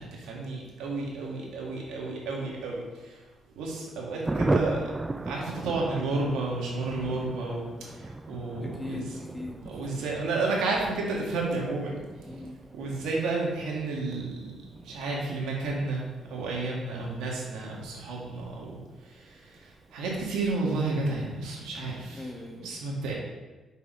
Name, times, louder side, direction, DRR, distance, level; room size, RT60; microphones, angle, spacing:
voice 1, 0.0-3.2 3.6-4.8 5.3-9.0 9.7-12.0 12.7-14.5 14.8-22.3 22.6-23.1, right 3 dB, 90° right, -2 dB, 2.0 m, -31 dB
Thunder, 4.2-20.4 20.7-20.8 21.0-21.2 21.4-21.8, right 2 dB, 20° right, 0.4 m, -37 dB
voice 2, 8.6-9.7 12.2-12.6 22.0-22.8, left 2 dB, 15° left, 1 dB, 1.4 m, -39 dB
6.0 x 5.4 x 5.2 m, 1.2 s
cardioid pair, 90°, 0 cm